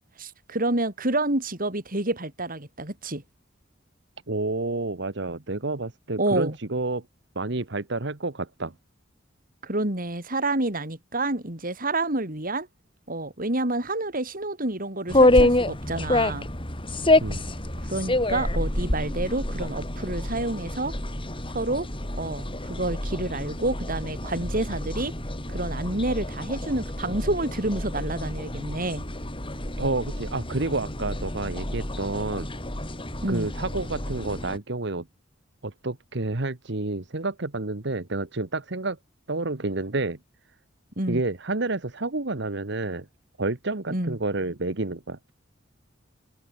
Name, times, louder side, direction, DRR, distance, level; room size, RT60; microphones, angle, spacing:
voice 1, 0.2-3.2 6.2-6.6 9.6-12.7 13.1-16.5 17.9-20.9 21.5-21.9 22.1-25.1 25.5-29.0 33.2-33.5 41.0-41.2 43.9-44.2, right 2 dB, 50° right, 5.0 m, -28 dB
voice 2, 4.3-7.0 7.3-8.7 17.2-17.4 29.8-32.5 33.3-35.1 35.6-39.0 39.3-40.2 41.1-43.1 43.4-45.2, right 2 dB, 65° right, 1.5 m, -29 dB
sound 1, 15.1-34.6, left 1 dB, 30° left, 5.5 m, -27 dB
open air
head